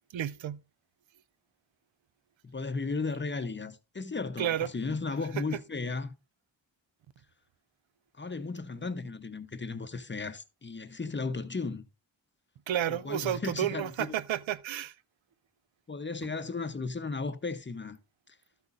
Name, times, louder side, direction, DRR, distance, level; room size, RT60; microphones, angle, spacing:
voice 1, 0.1-0.6 4.4-4.7 12.7-14.9, right 11 dB, 85° right, 0.6 m, -31 dB
voice 2, 2.4-6.1 8.2-11.8 12.9-14.2 15.9-18.0 18.3-18.4, left 4 dB, 25° left, 0.7 m, -35 dB
12.0 x 8.1 x 2.5 m
wide cardioid pair, 85°, 45 cm